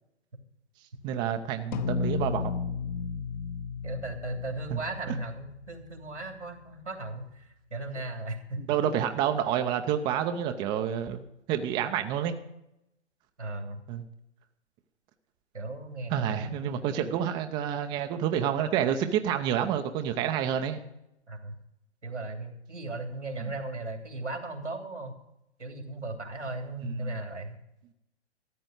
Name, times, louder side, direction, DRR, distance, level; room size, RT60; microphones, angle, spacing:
voice 1, 1.0-2.5 4.7-4.8 5.1-5.2 8.6-11.2 11.5-12.3 13.9-14.0 16.1-20.8 26.8-27.1, right 9 dB, 15° right, 7 dB, 0.5 m, -28 dB
sound 1, 1.7-6.3, left 6 dB, 40° left, 0.9 m, -34 dB
voice 2, 3.8-8.7 13.4-13.8 15.5-16.8 21.3-21.5 22.0-25.1 25.6-27.6, right 2 dB, 90° right, 5 dB, 3.1 m, -37 dB
13.5 x 8.6 x 7.9 m, 0.82 s
figure-of-eight pair, 130°, 35 cm